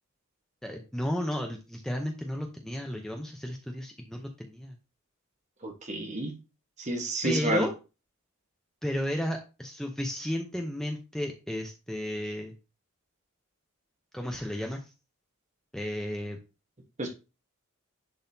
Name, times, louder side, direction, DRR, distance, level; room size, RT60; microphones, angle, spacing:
voice 1, 0.6-4.8 7.2-7.7 8.8-12.5 14.1-14.8 15.7-16.4, equal, ahead, 0.7 m, -33 dB
voice 2, 5.6-6.3 6.8-7.7 17.0-17.1, right 1 dB, 30° right, 1.2 m, -29 dB
10.5 x 4.0 x 2.7 m
head